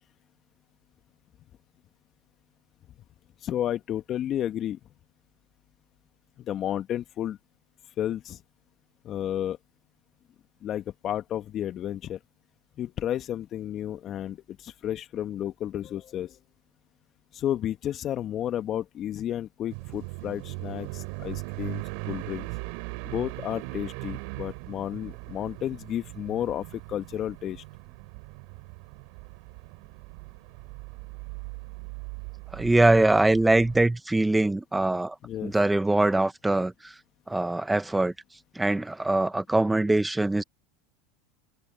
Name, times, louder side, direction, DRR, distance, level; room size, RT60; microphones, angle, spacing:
voice 1, 3.4-4.8 6.4-7.4 8.0-8.4 9.0-9.6 10.6-12.2 12.8-16.4 17.3-22.5 23.0-27.6 35.2-35.6, left 11 dB, 45° left, 1.4 m, -32 dB
sound 1, 19.7-33.9, right 34 dB, 65° right, 4.8 m, -39 dB
voice 2, 32.5-35.1 35.4-36.9 37.3-38.1 38.5-40.4, right 2 dB, 10° right, 1.5 m, -23 dB
hypercardioid pair, 90°, 0 cm